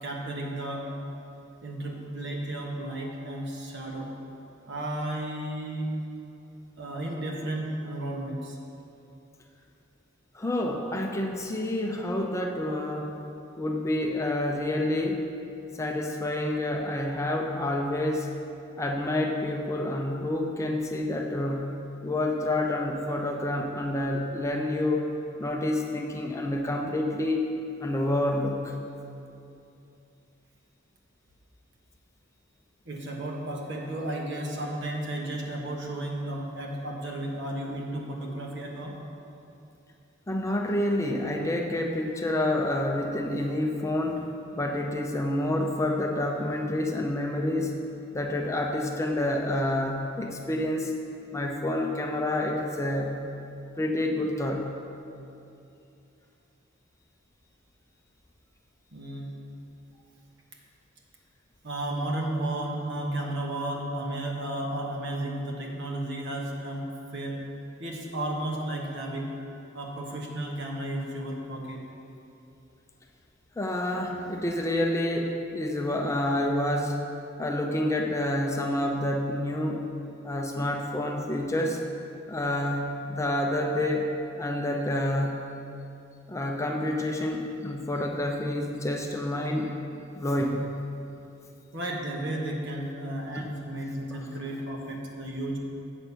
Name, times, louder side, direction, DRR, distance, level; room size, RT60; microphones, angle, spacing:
voice 1, 0.0-0.9 1.6-4.1 4.7-6.0 6.8-8.6 32.8-39.0 58.9-59.3 61.6-67.4 67.8-69.3 69.7-71.8 91.7-95.6, right 1 dB, 60° right, -1 dB, 1.3 m, -33 dB
voice 2, 10.3-13.2 13.6-15.3 15.8-18.3 18.8-21.7 22.0-25.1 25.4-27.5 27.8-28.8 40.3-44.2 44.5-47.8 48.1-50.9 51.3-53.2 53.8-54.7 73.6-77.0 77.4-79.9 80.2-81.8 82.3-84.1 84.4-85.4 86.3-89.8 90.2-90.6 93.3-93.5, left 1 dB, 15° left, 1 dB, 0.5 m, -28 dB
7.9 x 6.4 x 5.6 m, 2.7 s
head